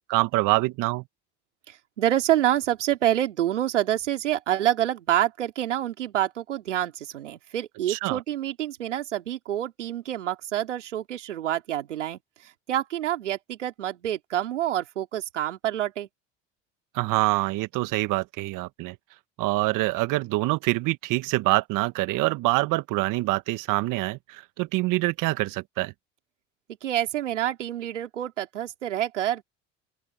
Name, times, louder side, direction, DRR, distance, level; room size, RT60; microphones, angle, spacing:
voice 1, 0.1-1.0 7.9-8.2 16.9-18.9 19.4-25.9, right 21 dB, 65° right, 1.5 m, -25 dB
voice 2, 1.7-12.2 12.7-16.1 26.8-29.4, right 12 dB, 90° right, 2.9 m, -27 dB
open air
hypercardioid pair, 70°, 35 cm